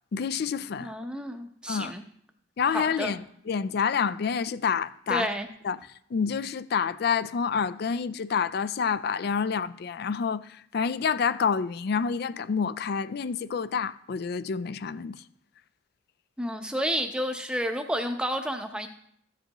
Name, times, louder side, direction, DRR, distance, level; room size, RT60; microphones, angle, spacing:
voice 1, 0.1-0.9 1.7-1.9 2.6-5.3 5.6-5.8 6.1-15.2, left 6 dB, 50° left, 0.3 m, -28 dB
voice 2, 0.8-2.0 2.7-3.2 5.1-5.5 16.4-18.9, equal, 5° right, 0.7 m, -30 dB
14.0 x 7.6 x 3.0 m
head